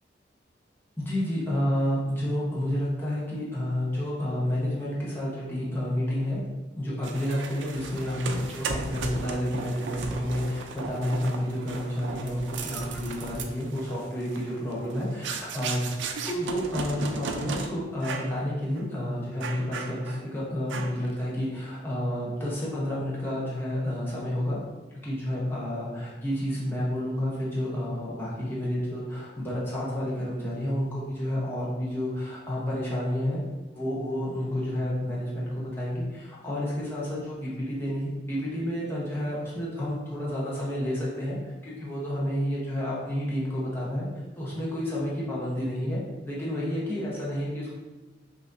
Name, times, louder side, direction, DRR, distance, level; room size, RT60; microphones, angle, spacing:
voice 1, 1.0-6.4 6.8-15.9 16.3-24.6 25.0-33.4 33.7-47.7, equal, 10° left, -7 dB, 0.8 m, -30 dB
sound 1, 7.0-17.7 18.0-18.4 18.7-18.9 19.4-20.3 20.7-21.1, right 4 dB, 85° right, 0.4 m, -36 dB
5.6 x 2.6 x 2.6 m, 1.1 s
head